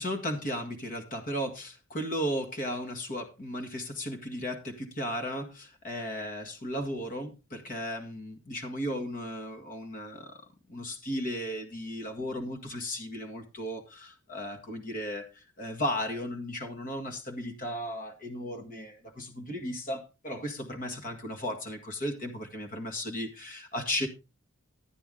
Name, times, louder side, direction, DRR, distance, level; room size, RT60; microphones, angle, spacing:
voice 1, 0.0-10.4 10.7-24.1, equal, 40° left, 6 dB, 1.7 m, -35 dB
12.5 x 9.1 x 3.7 m, 0.28 s
head